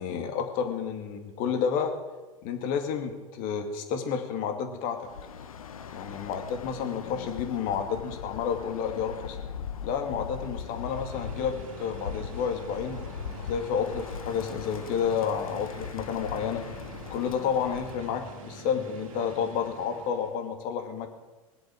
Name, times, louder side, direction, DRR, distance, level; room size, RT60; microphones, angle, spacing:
voice 1, 0.0-2.0 2.4-5.1 5.9-9.4 9.8-13.0 13.4-16.7 17.1-21.1, left 7 dB, 50° left, 5 dB, 2.5 m, -30 dB
Bird, 5.0-18.1, left 6 dB, 80° left, 1.0 m, -40 dB
sound 1, 10.5-20.5, right 1 dB, 75° right, 2.3 m, -45 dB
22.0 x 8.0 x 7.8 m, 1.2 s
hypercardioid pair, 90°, 18 cm